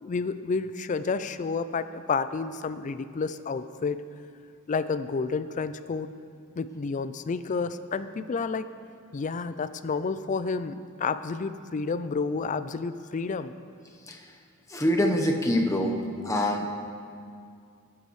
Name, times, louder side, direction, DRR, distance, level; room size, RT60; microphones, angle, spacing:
voice 1, 0.0-4.0 4.7-6.1 6.6-8.7 9.1-13.5 16.4-16.5, left 4 dB, 35° left, 12 dB, 0.4 m, -30 dB
voice 2, 14.7-15.9 16.2-16.8, left 1 dB, 15° left, 1 dB, 1.0 m, -25 dB
19.5 x 9.7 x 3.2 m, 2.3 s
head